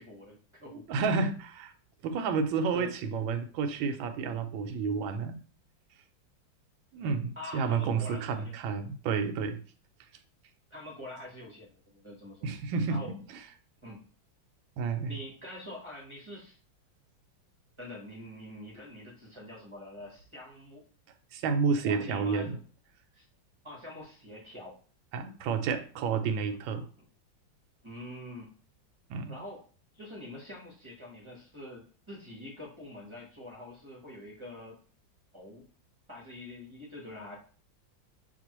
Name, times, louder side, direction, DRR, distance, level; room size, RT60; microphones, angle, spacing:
voice 1, 0.0-0.8 2.7-2.9 7.4-8.6 10.7-12.4 12.9-13.1 13.8-14.0 15.1-16.6 17.8-20.8 21.8-22.6 23.1-23.3 23.6-24.8 27.8-28.5 29.3-29.6 29.9-34.8 35.3-35.7 36.1-37.4, left 1 dB, 25° right, -4 dB, 0.7 m, -45 dB
voice 2, 0.7-1.7 2.0-5.4 6.9-9.6 12.4-13.1 14.8-15.1 21.3-22.6 25.1-26.9 29.1-29.4, right 5 dB, 80° right, 7 dB, 1.4 m, -30 dB
6.7 x 2.5 x 2.9 m, 0.40 s
omnidirectional pair, 2.1 m